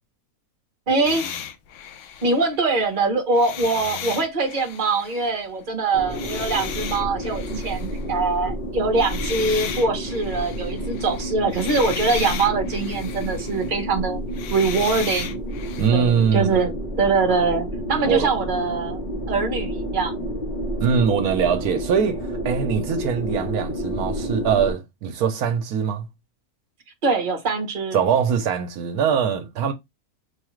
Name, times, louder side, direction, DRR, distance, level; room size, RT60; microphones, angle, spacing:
voice 1, 0.9-1.3 2.2-14.2 14.5-15.4 15.9-20.3 27.0-28.0, right 3 dB, 35° right, 1.0 m, -23 dB
sound 1, 1.0-2.9 3.3-5.4 6.1-8.1 8.9-13.8 14.2-15.9, left 8 dB, 65° left, 0.8 m, -35 dB
sound 2, 5.9-24.7, equal, 40° left, 1.0 m, -30 dB
voice 2, 15.8-16.7 18.0-18.3 20.8-26.1 27.9-29.7, right 7 dB, 75° right, 1.1 m, -22 dB
4.7 x 2.3 x 3.0 m
omnidirectional pair, 1.6 m